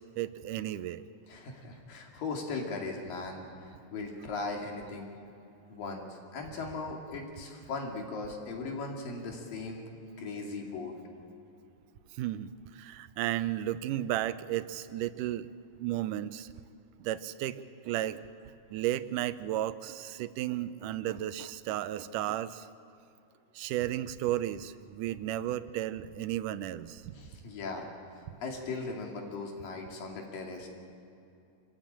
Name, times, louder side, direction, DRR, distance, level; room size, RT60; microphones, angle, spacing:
voice 1, 0.2-1.1 12.2-15.5 15.8-16.5 17.0-18.2 18.7-22.7 23.6-27.1, right 13 dB, 80° right, 14 dB, 2.1 m, -33 dB
voice 2, 1.3-3.4 3.9-5.1 5.7-9.9 10.2-10.9 27.1-27.9 28.4-30.7, left 3 dB, 85° left, 1 dB, 4.3 m, -38 dB
25.5 x 15.0 x 8.8 m, 2.7 s
omnidirectional pair, 3.9 m